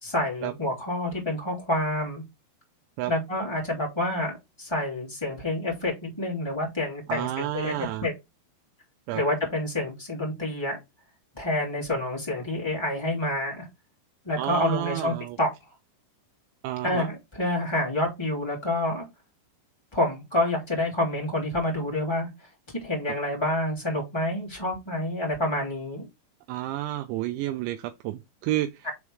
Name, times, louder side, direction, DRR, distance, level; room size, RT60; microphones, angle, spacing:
voice 1, 0.0-2.2 3.1-8.1 9.1-10.8 11.3-13.7 14.2-15.5 16.8-19.1 19.9-22.3 22.8-26.1 28.8-28.9, left 1 dB, 10° left, 1.3 m, -28 dB
voice 2, 7.1-8.1 9.1-9.2 14.4-15.4 16.6-17.1 23.1-23.2 26.5-28.9, right 14 dB, 85° right, 2.7 m, -30 dB
7.3 x 3.6 x 4.7 m
omnidirectional pair, 5.9 m